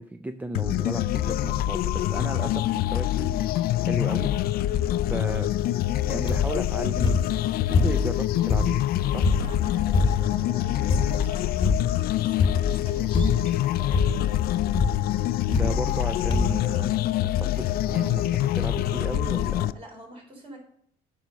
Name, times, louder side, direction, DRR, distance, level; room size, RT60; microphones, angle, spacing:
voice 1, 0.0-4.8 5.1-5.5 6.1-7.2 7.6-8.8 9.1-9.3 15.5-19.8, right 1 dB, 10° right, 8 dB, 0.4 m, -35 dB
sound 1, 0.5-19.7, left 13 dB, 65° left, 0.4 m, -25 dB
sound 2, 6.3-6.7 7.0-8.2 8.5-10.4 10.9-11.3 11.6-12.0 12.4-12.8 13.1-13.6 13.9-14.4 14.7-15.0 15.5-16.0 16.3-16.7 17.4-17.5 17.7-17.8, left 3 dB, 30° left, 1.1 m, -25 dB
voice 2, 9.3-14.2 19.7-20.6, right 1 dB, 35° right, -1 dB, 4.0 m, -46 dB
9.0 x 5.6 x 5.2 m, 0.67 s
cardioid pair, 110°, 17 cm